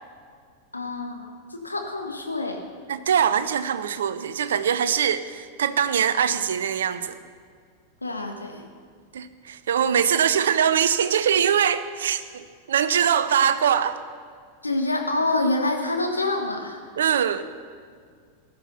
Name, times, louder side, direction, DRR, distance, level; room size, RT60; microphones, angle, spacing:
voice 1, 0.7-2.6 8.0-8.6 14.6-16.8, left 2 dB, 80° left, 3 dB, 1.5 m, -27 dB
voice 2, 2.9-7.2 9.1-14.0 17.0-17.4, right 8 dB, 65° right, 13 dB, 0.7 m, -22 dB
16.0 x 11.5 x 5.8 m, 2.1 s
figure-of-eight pair, 90°, 0 cm